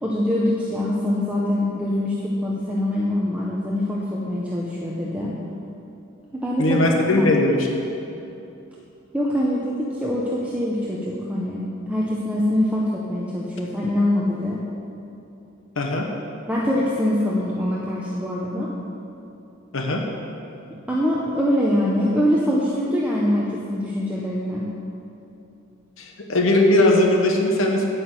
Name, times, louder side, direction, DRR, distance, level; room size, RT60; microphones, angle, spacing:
voice 1, 0.0-5.3 6.3-6.8 7.2-7.3 9.1-14.6 16.5-18.7 20.9-24.7, left 1 dB, 5° right, -6 dB, 0.9 m, -24 dB
voice 2, 6.6-7.7 15.8-16.1 19.7-20.0 26.0-27.8, left 1 dB, 75° left, 1 dB, 1.0 m, -19 dB
9.8 x 6.2 x 8.0 m, 2.8 s
head